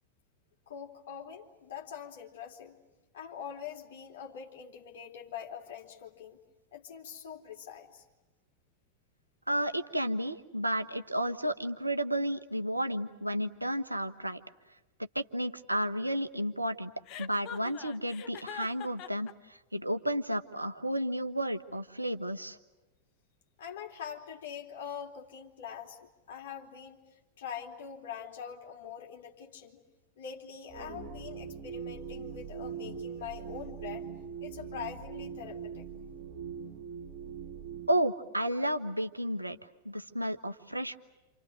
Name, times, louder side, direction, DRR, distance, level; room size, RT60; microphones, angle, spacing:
voice 1, 0.7-2.8 3.1-6.4 6.7-8.0 23.6-29.8 30.2-34.1 34.4-35.9, left 8 dB, 55° left, 1 dB, 3.8 m, -44 dB
voice 2, 9.5-14.4 15.1-16.9 17.2-19.3 19.7-22.6 37.9-39.6 39.8-41.0, right 1 dB, 85° right, 9 dB, 1.2 m, -32 dB
Chuckle chortle, 17.1-19.3, left 10 dB, 40° left, 1.2 m, -43 dB
sound 1, 30.7-37.9, right 7 dB, 40° right, 2.6 m, -41 dB
29.0 x 28.5 x 6.5 m, 1.1 s
figure-of-eight pair, 90°, 0 cm